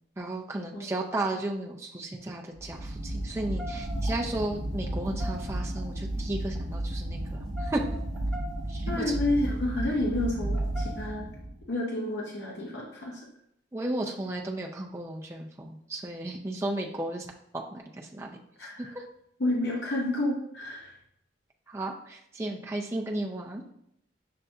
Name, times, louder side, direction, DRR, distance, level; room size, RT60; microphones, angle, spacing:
voice 1, 0.2-7.8 8.7-9.0 13.7-17.3 17.5-18.4 18.8-19.0 21.7-23.6, right 1 dB, 15° right, -1 dB, 0.4 m, -34 dB
sound 1, 2.5-11.6, right 1 dB, 70° right, 0.7 m, -33 dB
sound 2, 2.6-2.7 3.2-4.2 4.8-5.8 6.4-6.6 7.1-9.0 9.6-9.8 10.4-11.0, left 1 dB, 5° left, 1.4 m, -43 dB
voice 2, 8.9-11.3 11.7-13.2 18.6-18.9 19.4-20.9, left 1 dB, 65° left, -2 dB, 0.7 m, -30 dB
6.5 x 2.6 x 2.3 m, 0.75 s
head